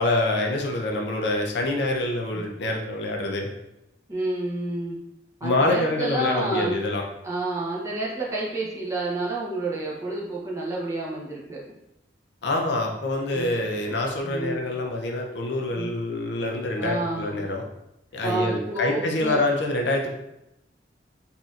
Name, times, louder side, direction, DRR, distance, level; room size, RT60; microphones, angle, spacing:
voice 1, 0.0-3.5 5.4-7.0 12.4-17.6 18.1-20.1, left 2 dB, 65° left, 1 dB, 0.5 m, -26 dB
voice 2, 4.1-5.0 5.4-6.8 7.2-11.6 13.3-13.6 14.2-14.6 15.7-15.9 16.8-17.3 18.2-19.4, right 2 dB, 15° right, -5 dB, 0.7 m, -29 dB
4.1 x 2.6 x 2.4 m, 0.88 s
head